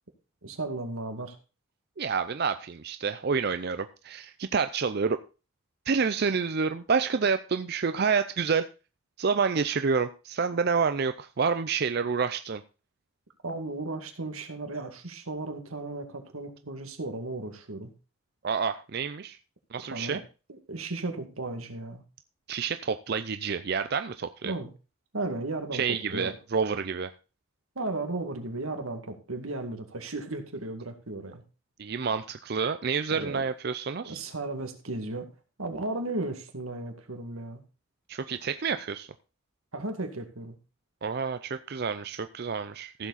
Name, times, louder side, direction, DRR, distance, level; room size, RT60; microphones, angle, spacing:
voice 1, 0.4-1.4 13.4-17.9 19.8-20.2 20.5-22.0 24.4-24.7 25.1-26.3 27.8-31.4 33.1-33.4 34.0-35.3 35.6-37.6 39.7-40.6, right 2 dB, 90° right, 5 dB, 2.2 m, -35 dB
voice 2, 2.0-5.2 5.9-8.7 9.2-12.6 18.4-19.4 19.7-20.2 22.5-24.5 25.7-27.1 31.8-34.2 38.1-39.1 41.0-43.1, right 5 dB, 50° right, 10 dB, 0.5 m, -28 dB
15.0 x 7.3 x 4.1 m, 0.32 s
head